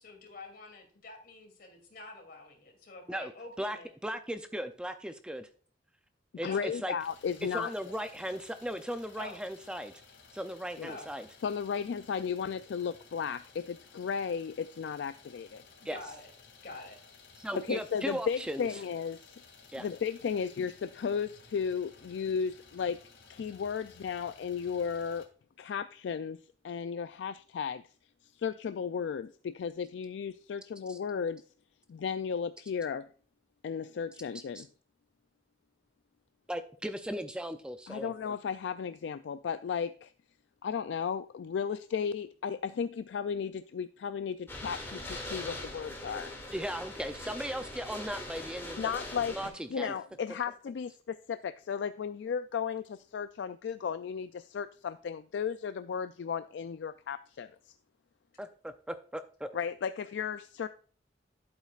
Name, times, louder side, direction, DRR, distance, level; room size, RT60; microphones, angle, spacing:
voice 1, 0.0-3.9 6.4-6.7 9.2-9.4 10.8-11.1 15.9-16.3 16.6-17.0, left 2 dB, 55° left, 2.8 m, -47 dB
voice 2, 3.6-5.5 6.4-6.9 7.5-9.9 10.3-11.3 15.8-16.0 17.4-18.7 19.7-19.9 30.9-31.0 34.5-34.6 36.5-38.1 46.5-48.9 49.3-49.9 58.4-59.5, equal, 5° right, 0.4 m, -37 dB
voice 3, 6.4-7.7 10.8-10.9 11.4-15.6 17.5-19.4 19.8-23.0 23.3-25.2 25.6-26.4 26.6-27.8 28.4-31.4 31.9-33.1 33.6-34.7 37.9-40.1 40.6-46.3 48.8-57.7 59.5-60.7, left 6 dB, 70° left, 0.3 m, -35 dB
Idling, 7.0-25.3, left 5 dB, 90° left, 2.4 m, -57 dB
sound 1, 44.5-49.5, left 1 dB, 15° left, 2.3 m, -41 dB
11.5 x 8.4 x 2.4 m
head